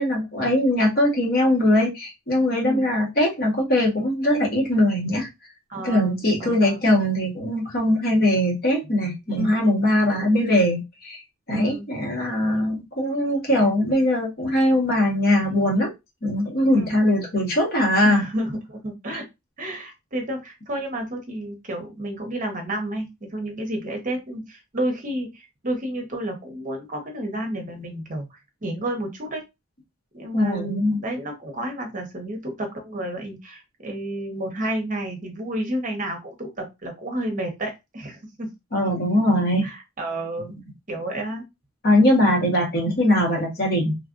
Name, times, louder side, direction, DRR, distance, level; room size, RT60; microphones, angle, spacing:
voice 1, 0.0-5.3 5.8-11.2 11.5-15.9 16.2-18.2 30.3-31.0 38.7-39.7 41.8-44.0, left 1 dB, 50° left, -1 dB, 1.2 m, -21 dB
voice 2, 5.7-6.7 9.4-10.3 11.5-11.9 16.7-17.0 18.0-19.2 19.6-29.4 30.1-38.5 39.6-40.5 40.9-41.4, right 1 dB, 40° right, 3 dB, 0.9 m, -31 dB
3.1 x 2.4 x 2.5 m, 0.22 s
head